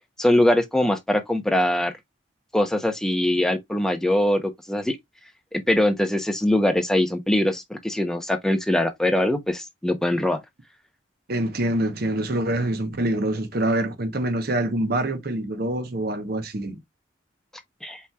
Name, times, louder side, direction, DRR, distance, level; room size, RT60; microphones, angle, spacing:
voice 1, 0.2-1.9 2.5-5.0 5.5-10.4 17.8-18.0, left 1 dB, 5° left, 0.6 m, -22 dB
voice 2, 11.3-16.8, right 1 dB, 50° right, 0.8 m, -25 dB
5.4 x 3.1 x 2.2 m
head